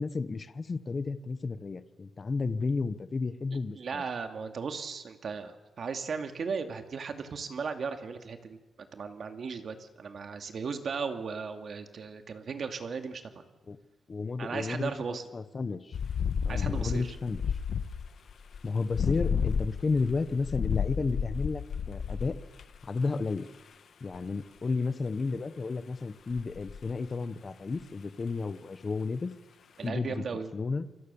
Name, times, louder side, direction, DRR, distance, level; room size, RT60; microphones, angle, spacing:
voice 1, 0.0-4.0 13.7-13.8 14.1-16.0 16.4-17.4 18.6-22.4 22.8-23.5 24.0-29.3 29.8-30.2 30.5-30.9, left 4 dB, 25° left, 12 dB, 1.0 m, -32 dB
voice 2, 3.5-8.6 8.9-13.4 14.4-15.2 16.5-17.2 29.8-30.5, right 5 dB, 40° right, 6 dB, 2.3 m, -36 dB
sound 1, 15.9-22.8 26.3-26.9, left 6 dB, 50° left, 1.3 m, -31 dB
29.0 x 24.5 x 7.1 m, 1.2 s
wide cardioid pair, 165°, 0 cm